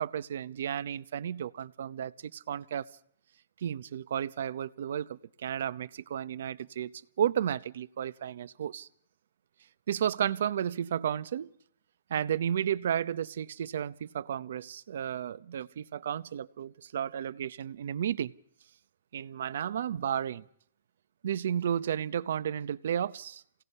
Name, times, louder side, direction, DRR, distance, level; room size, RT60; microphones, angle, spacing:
voice 1, 0.0-2.9 3.6-6.9 7.2-8.9 9.9-11.5 12.1-18.3 19.1-20.4 21.2-23.4, right 9 dB, 60° right, 0.7 m, -33 dB
28.5 x 17.5 x 5.5 m
hypercardioid pair, 160°, 0 cm